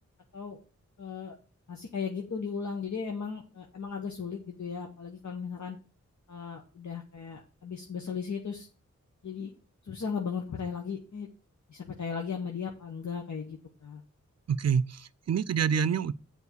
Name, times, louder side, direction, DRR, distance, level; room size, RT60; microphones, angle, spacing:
voice 1, 1.0-1.4 1.7-5.8 6.3-8.7 9.2-9.5 9.8-11.3 11.7-14.0, left 6 dB, 70° left, 1.1 m, -36 dB
voice 2, 14.5-16.1, right 7 dB, 60° right, 0.5 m, -27 dB
7.2 x 4.4 x 6.8 m
wide cardioid pair, 55°, 30 cm